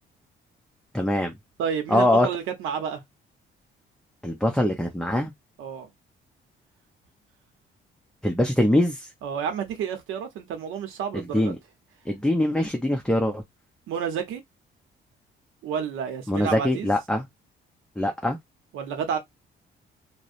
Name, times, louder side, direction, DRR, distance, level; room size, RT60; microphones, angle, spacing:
voice 1, 0.9-1.3 1.9-2.3 4.2-5.3 8.2-9.1 11.3-11.6 12.1-13.4 16.3-17.2 18.0-18.4, left 1 dB, 5° left, 0.5 m, -23 dB
voice 2, 1.6-3.0 5.6-5.9 9.2-11.5 13.9-14.4 15.6-16.9 18.7-19.2, right 7 dB, 90° right, 0.7 m, -30 dB
2.7 x 2.1 x 2.5 m
cardioid pair, 90°, 20 cm